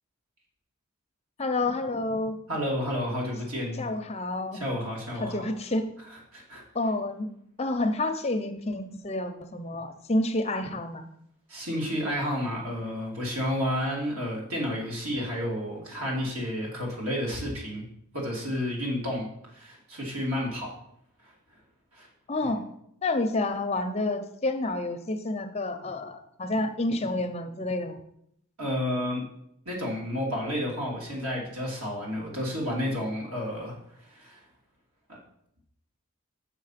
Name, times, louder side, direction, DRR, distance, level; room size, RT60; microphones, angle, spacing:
voice 1, 1.4-2.4 3.8-4.6 5.2-5.9 6.7-7.3 7.6-11.1 22.3-22.6 23.0-28.0, left 2 dB, 30° left, 7 dB, 0.6 m, -29 dB
voice 2, 2.5-3.9 4.5-5.5 6.3-6.6 11.5-17.9 18.1-19.3 19.5-20.7 21.9-22.1 22.4-22.5 28.6-29.2 29.6-33.7 34.1-34.4, equal, 85° right, -3 dB, 2.9 m, -31 dB
7.1 x 5.8 x 5.7 m, 0.73 s
head